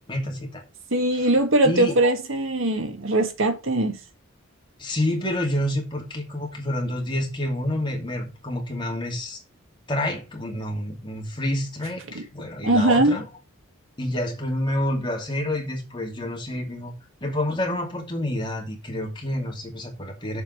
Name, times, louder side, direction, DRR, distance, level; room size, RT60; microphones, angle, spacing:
voice 1, 0.1-0.6 1.1-1.3 1.6-2.1 4.8-9.4 9.9-13.2 14.0-16.9 17.2-20.4, left 1 dB, 20° left, 2.6 m, -28 dB
voice 2, 0.9-4.0 12.6-13.2, right 2 dB, 65° right, 1.8 m, -21 dB
7.0 x 5.4 x 6.7 m
head